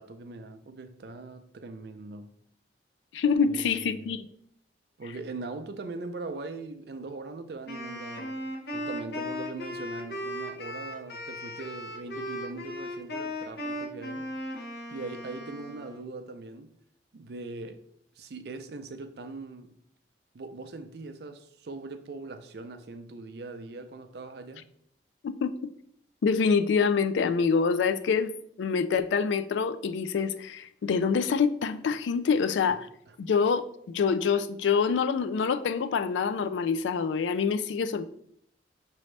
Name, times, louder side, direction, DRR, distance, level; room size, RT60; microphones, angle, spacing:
voice 1, 0.0-2.3 3.4-4.2 5.0-8.4 8.7-14.3 14.9-16.7 17.1-17.8 18.2-19.8 20.3-24.6 33.1-33.2, right 3 dB, 60° right, 0.5 m, -41 dB
voice 2, 3.1-4.3 25.2-25.5 26.2-32.9 33.2-38.1, left 5 dB, 85° left, 0.3 m, -26 dB
Wind instrument woodwind instrument, 7.7-16.1, left 1 dB, 60° left, 0.9 m, -37 dB
6.0 x 2.7 x 3.2 m
head